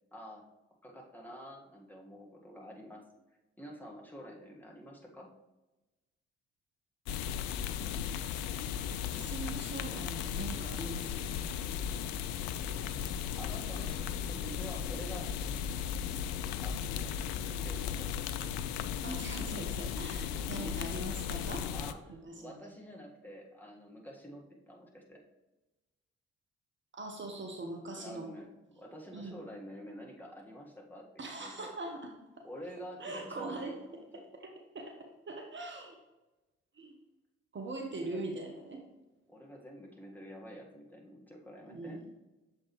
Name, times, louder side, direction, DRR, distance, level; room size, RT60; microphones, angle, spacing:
voice 1, 0.1-0.4 0.8-3.0 3.6-5.3 13.4-15.3 16.6-18.1 20.5-20.8 21.7-25.2 28.0-28.5 28.8-31.1 31.4-31.7 32.4-34.0 37.9-38.3 39.3-42.0, equal, 5° left, -2 dB, 1.7 m, -48 dB
sound 1, 7.1-21.9, left 8 dB, 65° left, 0.5 m, -36 dB
voice 2, 9.1-11.3 19.0-21.7 22.1-22.5 26.9-28.3 29.1-29.4 31.2-32.1 33.0-33.8 34.1-34.9 35.3-35.9 36.7-36.9 37.5-38.8 41.7-42.0, right 2 dB, 35° right, 2 dB, 1.2 m, -41 dB
7.1 x 4.5 x 3.2 m, 1.1 s
figure-of-eight pair, 45°, 32 cm